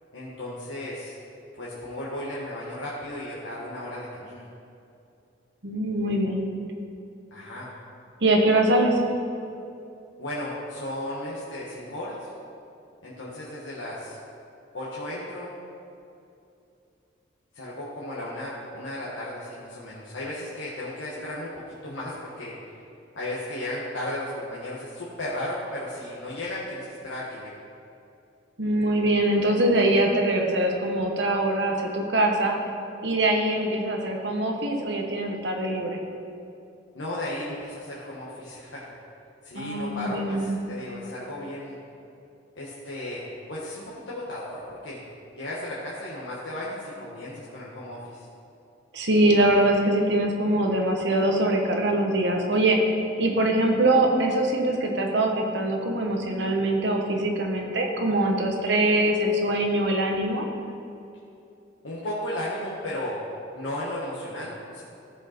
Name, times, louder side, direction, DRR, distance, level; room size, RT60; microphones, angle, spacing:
voice 1, 0.1-1.2 1.5-4.4 7.3-7.7 10.2-12.3 13.0-14.2 14.7-15.5 17.5-22.5 23.1-27.5 36.9-38.9 39.4-41.8 42.5-43.2 43.5-45.0 45.3-48.3 61.8-63.2 63.5-64.8, left 1 dB, 85° left, -6 dB, 1.4 m, -35 dB
voice 2, 5.6-6.4 8.2-9.0 28.6-32.5 33.0-36.0 39.5-40.6 48.9-52.8 53.2-60.5, right 1 dB, 65° right, 2 dB, 1.2 m, -23 dB
15.0 x 5.3 x 4.4 m, 2.7 s
head